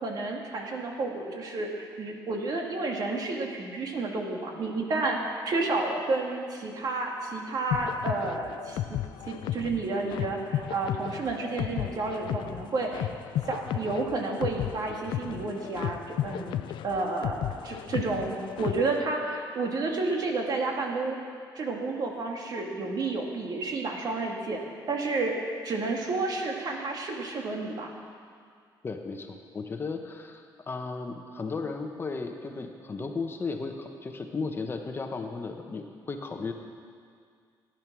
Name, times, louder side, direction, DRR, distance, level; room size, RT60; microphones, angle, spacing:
voice 1, 0.0-5.2 5.5-8.8 9.3-13.1 13.5-16.6 16.8-21.2 21.6-24.6 24.9-25.4 25.6-27.9, right 3 dB, 50° right, 1 dB, 2.1 m, -31 dB
sound 1, 7.7-19.0, left 12 dB, 80° left, 0.5 m, -34 dB
voice 2, 28.8-36.5, left 4 dB, 30° left, 4 dB, 1.0 m, -35 dB
16.0 x 10.0 x 6.1 m, 2.1 s
cardioid pair, 130°, 8 cm